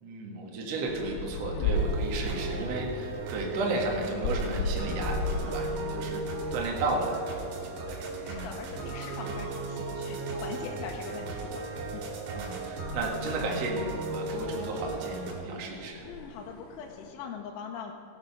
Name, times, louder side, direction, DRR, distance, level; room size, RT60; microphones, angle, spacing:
voice 1, 0.0-8.8 12.0-16.0, right 2 dB, 55° right, -1 dB, 2.0 m, -34 dB
sound 1, 0.9-17.1, left 2 dB, 70° left, 3.0 m, -38 dB
sound 2, 1.7-15.3, right 3 dB, 75° right, 4.0 m, -36 dB
voice 2, 8.2-11.6 11.9-12.0 16.1-17.9, left 6 dB, 90° left, 0 dB, 3.2 m, -42 dB
18.0 x 8.1 x 5.5 m, 2.7 s
omnidirectional pair, 5.4 m